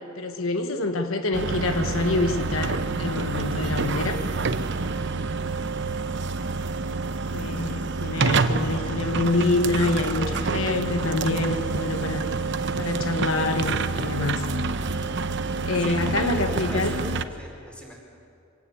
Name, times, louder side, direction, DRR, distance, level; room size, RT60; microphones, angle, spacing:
voice 1, 0.2-4.2 7.3-12.3 12.8-14.5 15.6-16.9, left 2 dB, 85° left, 7 dB, 1.3 m, -26 dB
sound 1, 1.3-17.2, right 3 dB, 60° right, 0.9 m, -27 dB
voice 2, 15.8-17.0 17.3-17.9, equal, 5° left, -2 dB, 4.9 m, -40 dB
25.0 x 16.5 x 8.6 m, 2.6 s
head